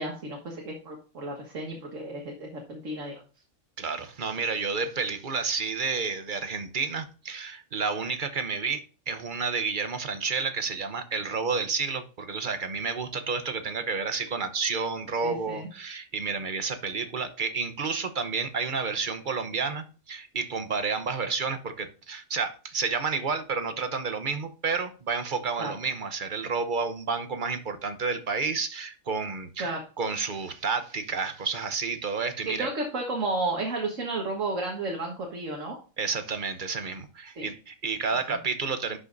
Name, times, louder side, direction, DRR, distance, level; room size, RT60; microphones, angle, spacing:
voice 1, 0.0-3.2 15.2-15.7 25.6-25.7 29.6-29.8 32.5-35.8 37.4-37.5 38.3-38.4, right 2 dB, 80° right, 1.8 m, -32 dB
voice 2, 3.8-32.7 36.0-39.0, right 5 dB, 45° right, 0.9 m, -30 dB
11.0 x 6.2 x 2.6 m
omnidirectional pair, 1.3 m